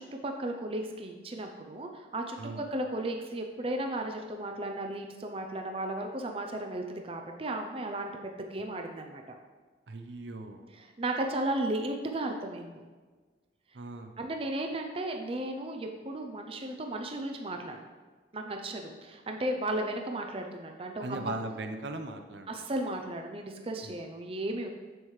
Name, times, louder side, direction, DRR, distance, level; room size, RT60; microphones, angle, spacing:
voice 1, 0.0-8.1 8.4-9.4 10.7-12.8 14.2-17.8 18.3-21.3 22.5-24.7, right 1 dB, 30° right, 3 dB, 0.5 m, -35 dB
voice 2, 9.9-10.7 13.7-14.3 21.0-22.6 23.8-24.0, right 2 dB, 75° right, 6 dB, 0.7 m, -39 dB
7.8 x 7.4 x 3.2 m, 1.4 s
head